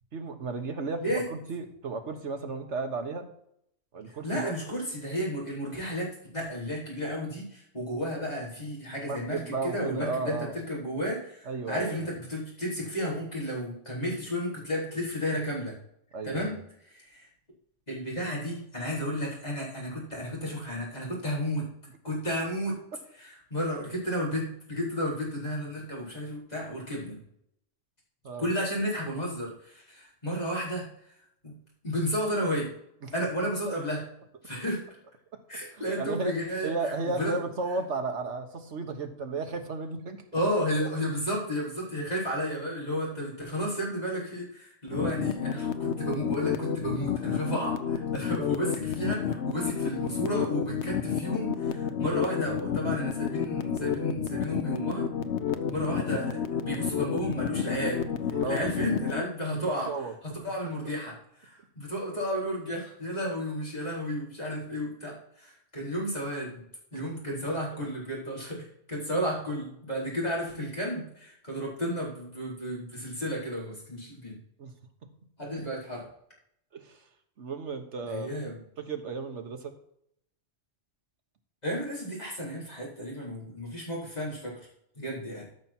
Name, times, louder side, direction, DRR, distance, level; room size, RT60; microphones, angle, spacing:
voice 1, 0.1-3.3 3.9-4.5 9.0-10.5 11.4-12.0 16.1-16.5 28.2-28.5 33.0-33.1 33.7-33.8 35.7-36.3 36.6-40.2 48.4-48.5 55.8-55.9 58.3-58.7 59.9-60.1 66.9-67.0 74.6-74.7 76.7-77.0 77.4-78.3 78.8-79.7, right 3 dB, 75° right, 6 dB, 1.6 m, -34 dB
voice 2, 4.2-15.8 16.2-16.6 16.8-17.3 17.9-21.7 22.0-22.8 23.2-27.2 28.4-31.1 31.4-31.5 31.8-32.7 33.1-34.0 34.4-34.8 35.5-37.4 40.3-55.1 55.7-66.6 66.9-74.4 75.4-76.0 78.1-78.6 81.6-84.5 84.9-85.5, equal, 35° left, -5 dB, 4.4 m, -32 dB
sound 1, 44.9-59.2, left 8 dB, 70° left, 1.0 m, -30 dB
13.0 x 6.0 x 4.4 m, 0.73 s
omnidirectional pair, 1.2 m